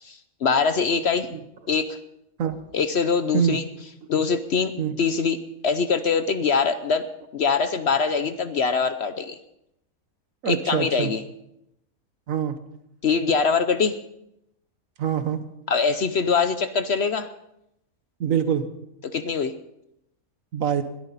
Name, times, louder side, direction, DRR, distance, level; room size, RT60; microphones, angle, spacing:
voice 1, 0.0-1.3 1.7-2.0 2.7-3.6 4.1-4.7 5.0-7.0 7.3-9.4 10.5-11.2 13.0-13.9 15.7-17.3 19.1-19.5, left 5 dB, 55° left, 11 dB, 0.9 m, -23 dB
voice 2, 10.4-11.1 12.3-12.5 15.0-15.4 18.2-18.7 20.5-20.8, right 8 dB, 65° right, 10 dB, 1.4 m, -24 dB
21.0 x 13.0 x 4.1 m, 0.82 s
omnidirectional pair, 1.5 m